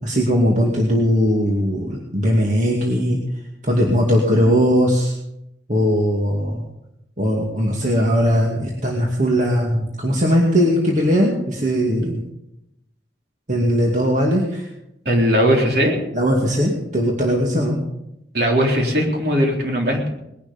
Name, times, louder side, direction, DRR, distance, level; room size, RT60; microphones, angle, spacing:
voice 1, 0.0-3.2 3.6-5.1 5.7-6.6 7.2-12.2 13.5-14.7 16.1-17.8, equal, 40° right, -2 dB, 2.4 m, -19 dB
voice 2, 15.1-16.0 18.3-20.1, equal, 60° right, 0 dB, 3.9 m, -18 dB
20.5 x 11.5 x 5.3 m, 0.84 s
head